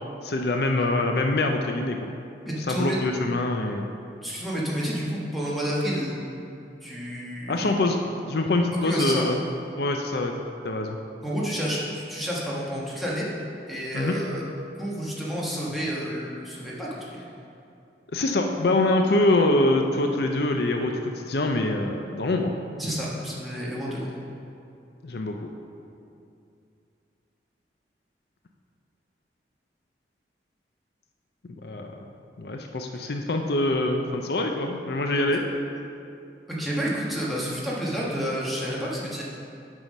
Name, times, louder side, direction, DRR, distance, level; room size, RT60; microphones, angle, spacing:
voice 1, 0.2-2.1 2.7-3.9 7.5-8.0 8.3-9.3 9.8-10.3 10.6-11.0 13.9-14.2 18.1-22.5 25.0-25.4 31.6-31.9 32.4-35.4, left 2 dB, 65° left, 3 dB, 0.5 m, -24 dB
voice 2, 2.5-3.0 4.2-6.2 6.8-7.9 8.7-9.3 11.2-13.3 13.7-14.4 14.8-17.3 22.8-24.1 33.5-33.6 36.5-39.2, equal, ahead, -7 dB, 1.4 m, -30 dB
9.0 x 5.6 x 5.4 m, 2.6 s
head